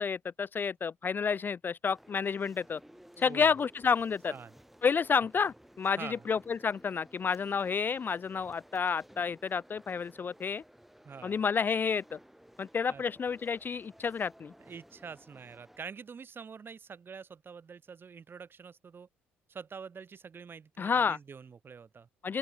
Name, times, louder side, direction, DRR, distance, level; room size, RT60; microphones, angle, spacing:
voice 1, 0.0-2.8 3.2-4.3 4.8-10.6 11.2-12.2 12.6-14.5 20.8-21.2 22.2-22.4, left 6 dB, 35° left, 0.3 m, -30 dB
sound 1, 1.9-15.8, equal, 5° right, 1.9 m, -57 dB
sound 2, 2.2-4.5 6.4-8.7, left 9 dB, 55° left, 7.7 m, -74 dB
voice 2, 3.2-3.5 4.3-4.5 6.0-6.2 11.0-11.4 12.9-13.0 14.6-19.1 19.5-22.1, right 6 dB, 40° right, 1.3 m, -46 dB
open air
hypercardioid pair, 50°, 6 cm